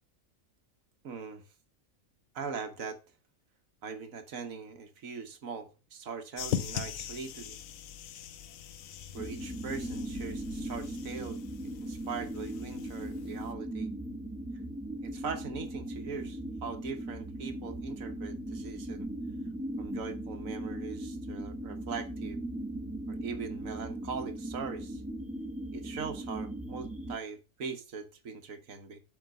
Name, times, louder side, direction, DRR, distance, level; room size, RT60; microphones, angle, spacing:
voice 1, 1.0-1.4 2.3-3.0 3.8-7.6 9.1-11.4 11.8-13.9 15.0-19.1 19.8-22.4 23.1-25.0 25.7-29.0, right 5 dB, 75° right, 1.5 m, -41 dB
sound 1, 6.4-13.5, left 9 dB, 75° left, 1.1 m, -41 dB
sound 2, 9.2-27.2, right 1 dB, 5° right, 1.0 m, -38 dB
7.1 x 4.9 x 6.4 m
omnidirectional pair, 1.4 m